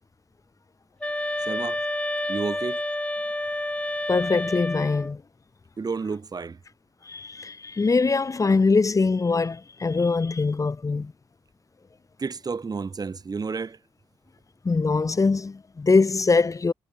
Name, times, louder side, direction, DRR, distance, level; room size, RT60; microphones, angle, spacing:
sound 1, 1.0-5.2, left 1 dB, 10° left, 4.7 m, -29 dB
voice 1, 1.4-1.8 2.3-2.8 5.8-6.6 12.2-13.8, right 4 dB, 40° right, 8.0 m, -31 dB
voice 2, 4.1-5.2 7.1-11.1 14.6-16.7, left 4 dB, 35° left, 4.3 m, -22 dB
cardioid pair, 90°, 10 cm